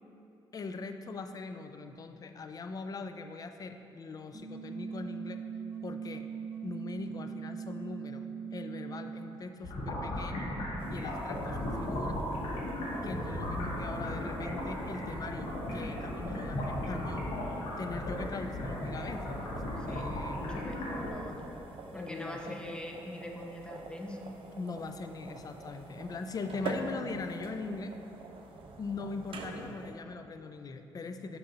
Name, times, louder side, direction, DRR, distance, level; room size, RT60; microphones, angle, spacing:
voice 1, 0.5-5.4 5.8-6.2 6.6-10.5 10.9-12.2 13.0-17.3 17.8-19.4 19.8-20.7 21.9-22.6 24.6-27.9 28.8-31.4, left 4 dB, 40° left, 7 dB, 0.4 m, -41 dB
sound 1, 4.3-9.3, right 7 dB, 20° right, 0.8 m, -41 dB
sound 2, 9.6-21.1, left 1 dB, 85° left, 1.3 m, -36 dB
sound 3, 10.8-29.9, right 3 dB, 65° right, 0.6 m, -46 dB
voice 2, 19.8-21.4 21.9-24.2, left 1 dB, 10° left, 1 dB, 0.7 m, -42 dB
6.5 x 3.0 x 5.2 m, 2.8 s
cardioid pair, 70°, 10 cm